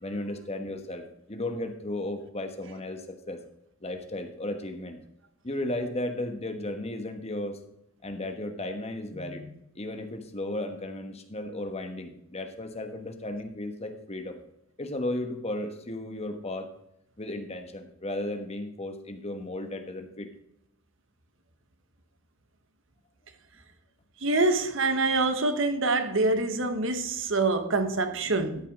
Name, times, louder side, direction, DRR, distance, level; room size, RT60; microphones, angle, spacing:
voice 1, 0.0-1.0 1.3-3.4 3.8-5.0 5.4-7.6 8.0-14.4 14.8-16.7 17.2-20.3, left 1 dB, 30° left, 1.3 m, -35 dB
voice 2, 24.2-28.7, right 3 dB, 65° right, 1.2 m, -25 dB
13.0 x 5.6 x 5.3 m
head